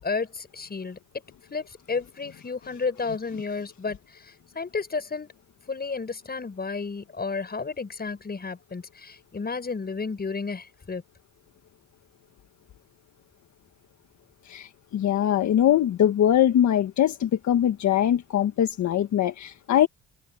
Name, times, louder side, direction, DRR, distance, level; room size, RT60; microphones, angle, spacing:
voice 1, 0.0-1.0 1.5-5.3 5.7-11.0, left 4 dB, 30° left, 7.3 m, -32 dB
voice 2, 14.5-19.9, left 10 dB, 70° left, 1.6 m, -22 dB
cardioid pair, 90°, 30 cm